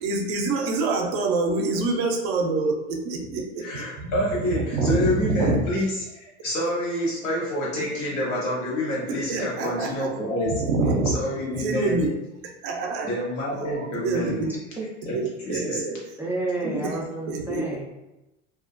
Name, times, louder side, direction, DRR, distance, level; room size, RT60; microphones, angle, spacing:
voice 1, 0.0-4.1 4.7-5.6 9.1-10.1 10.6-11.1 11.6-12.1 12.6-13.1 14.0-14.5 15.1-16.0 16.6-17.0 17.3-17.7, right 3 dB, 60° right, 3 dB, 0.6 m, -26 dB
voice 2, 3.6-10.5 11.0-12.0 13.0-14.4 15.1-15.8, equal, 85° left, -5 dB, 1.1 m, -27 dB
voice 3, 14.4-14.9 16.2-18.0, right 2 dB, 5° right, -4 dB, 0.3 m, -31 dB
2.4 x 2.0 x 2.5 m, 0.96 s
hypercardioid pair, 90°, 36 cm